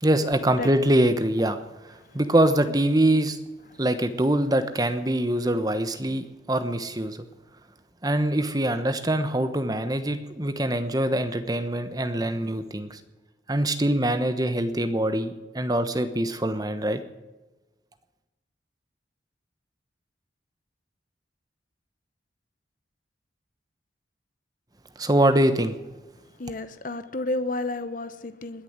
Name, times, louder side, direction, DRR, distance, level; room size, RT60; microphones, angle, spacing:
voice 1, 0.0-1.6 1.9-3.4 3.8-7.2 8.0-13.0 13.5-17.0 25.0-25.7, right 1 dB, 20° right, 9 dB, 1.1 m, -24 dB
voice 2, 26.4-28.6, left 2 dB, 45° left, 11 dB, 0.9 m, -31 dB
21.0 x 7.0 x 9.5 m, 1.1 s
head